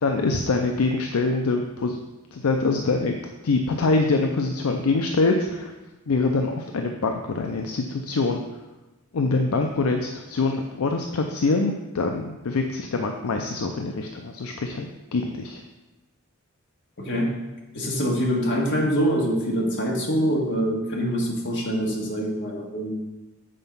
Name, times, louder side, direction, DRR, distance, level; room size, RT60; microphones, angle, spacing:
voice 1, 0.0-2.0 2.3-3.2 3.4-5.7 6.1-8.4 9.1-14.9 15.1-15.6, left 3 dB, 75° left, 4 dB, 0.5 m, -24 dB
voice 2, 17.0-17.3 17.7-23.0, equal, 55° left, -2 dB, 1.8 m, -24 dB
7.7 x 4.5 x 5.4 m, 1.1 s
head